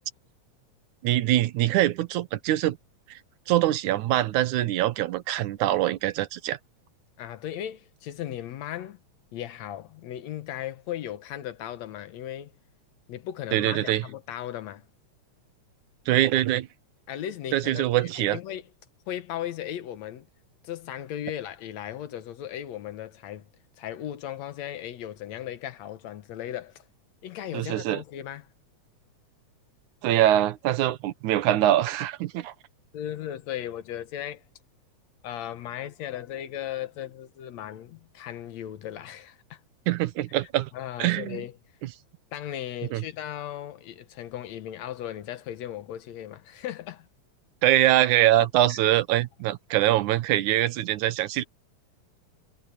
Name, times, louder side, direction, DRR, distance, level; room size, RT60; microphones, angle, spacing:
voice 1, 1.0-2.8 3.1-3.2 3.5-6.6 13.5-14.0 16.1-16.7 17.5-18.4 27.5-28.0 30.0-32.5 39.9-40.7 41.0-41.4 42.9-43.0 47.6-51.4, right 13 dB, 85° right, 2.4 m, -23 dB
voice 2, 7.2-9.0 9.3-12.5 13.1-14.9 17.1-18.6 19.1-20.3 20.6-23.5 23.8-26.8 27.2-28.5 32.9-34.4 35.2-39.6 40.7-41.6 42.3-47.1 48.4-49.0, left 11 dB, 70° left, 2.2 m, -37 dB
omnidirectional pair, 3.4 m